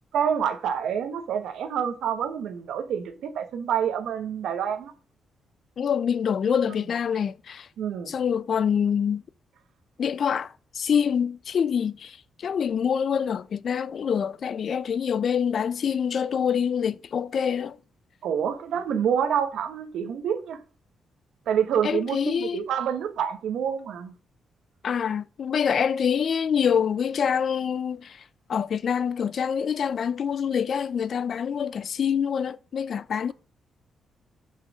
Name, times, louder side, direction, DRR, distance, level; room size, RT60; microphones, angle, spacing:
voice 1, 0.1-4.9 7.8-8.1 18.2-20.6 21.5-24.1, right 8 dB, 80° right, 1.2 m, -27 dB
voice 2, 5.8-7.7 8.1-9.2 10.0-17.8 21.8-22.6 24.8-28.2 28.5-33.3, left 7 dB, 45° left, 0.3 m, -26 dB
5.7 x 5.7 x 6.1 m
wide cardioid pair, 165°, 0 cm